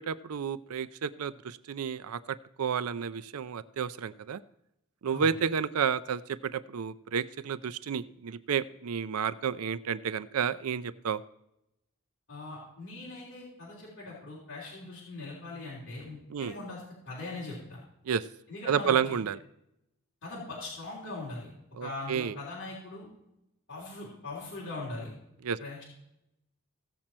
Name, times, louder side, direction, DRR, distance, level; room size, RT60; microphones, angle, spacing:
voice 1, 0.0-4.4 5.0-11.2 16.3-16.5 18.1-18.2 18.7-19.4 21.8-22.4 25.4-25.6, right 7 dB, 85° right, 16 dB, 0.5 m, -31 dB
voice 2, 12.3-17.8 18.5-19.0 20.2-21.5 21.8-23.1 23.7-25.1 25.6-25.8, left 2 dB, 55° left, -6 dB, 3.5 m, -41 dB
16.5 x 7.5 x 4.3 m, 0.84 s
head